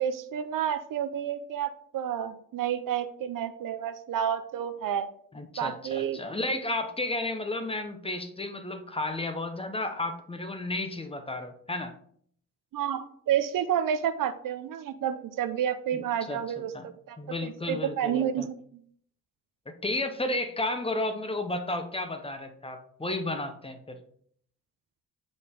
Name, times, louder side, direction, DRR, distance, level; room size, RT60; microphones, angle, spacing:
voice 1, 0.0-5.1 5.6-6.2 12.7-18.8, right 9 dB, 65° right, 11 dB, 0.7 m, -30 dB
voice 2, 5.3-11.9 15.9-16.4 16.7-16.9 17.2-18.5 19.7-24.0, left 2 dB, 15° left, 7 dB, 0.8 m, -33 dB
6.5 x 5.3 x 3.6 m, 0.62 s
cardioid pair, 90°, 35 cm